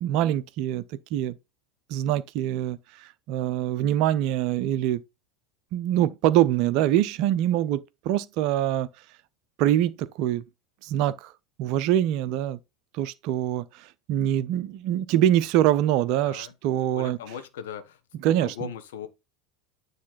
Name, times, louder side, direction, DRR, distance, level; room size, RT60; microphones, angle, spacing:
voice 1, 0.0-0.8 1.1-1.4 1.9-5.0 5.7-8.9 9.6-10.4 10.8-11.3 11.6-12.6 12.9-17.2 18.2-18.5, right 12 dB, 55° right, 0.6 m, -24 dB
voice 2, 16.8-18.0 18.4-19.1, left 7 dB, 65° left, 1.1 m, -38 dB
9.5 x 3.2 x 4.2 m
figure-of-eight pair, 75°, 0 cm